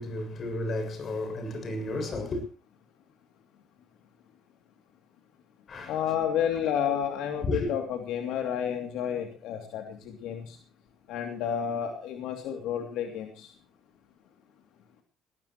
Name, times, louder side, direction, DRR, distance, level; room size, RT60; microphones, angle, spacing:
voice 1, 0.0-2.4 5.7-6.0 7.4-7.7, left 1 dB, 50° left, 7.2 m, -32 dB
voice 2, 5.9-10.6 11.1-13.5, left 9 dB, 80° left, 2.8 m, -31 dB
20.5 x 20.0 x 3.1 m
cardioid pair, 90°, 0 cm